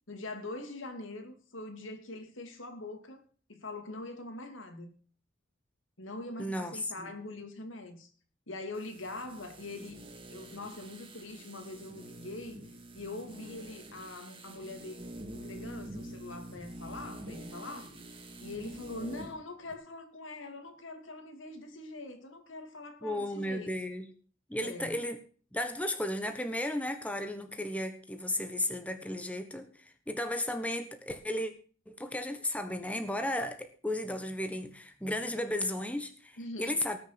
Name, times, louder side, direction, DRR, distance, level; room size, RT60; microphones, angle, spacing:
voice 1, 0.1-4.9 6.0-8.1 8.5-10.0 10.3-12.6 12.9-15.0 15.3-17.9 18.4-23.7 24.6-25.0 36.4-36.8, left 2 dB, 75° left, 2.6 m, -43 dB
voice 2, 6.4-7.2 23.0-24.1 24.5-25.2 25.5-31.5 31.9-37.0, left 1 dB, 5° left, 1.3 m, -34 dB
sound 1, 8.7-19.4 19.7-19.8, right 1 dB, 25° right, 2.3 m, -46 dB
19.0 x 6.5 x 6.0 m
head